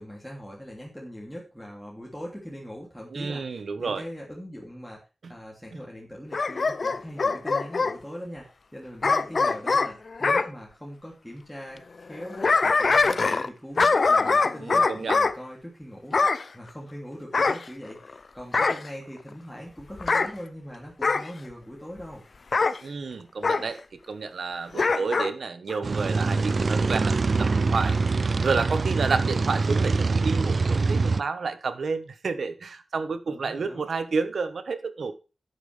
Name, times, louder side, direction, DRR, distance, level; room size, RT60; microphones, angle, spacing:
voice 1, 0.0-5.0 5.3-16.2 16.5-22.2 33.3-33.9, equal, 5° left, -3 dB, 3.0 m, -41 dB
voice 2, 3.1-4.0 5.2-5.3 5.7-5.8 14.6-15.2 22.8-28.0 28.4-35.1, right 4 dB, 75° right, 11 dB, 1.3 m, -30 dB
Bark / Growling, 6.3-8.0 9.0-10.5 12.1-13.5 13.8-15.3 16.1-16.4 17.3-18.1 18.5-18.9 20.0-20.3 21.0-21.3 22.5-22.8 23.4-23.7 24.7-25.3 25.7-25.8, left 4 dB, 50° left, 0.7 m, -23 dB
sound 1, 25.8-31.2, right 4 dB, 50° right, 0.4 m, -24 dB
12.0 x 8.9 x 3.5 m, 0.31 s
wide cardioid pair, 125°, 0 cm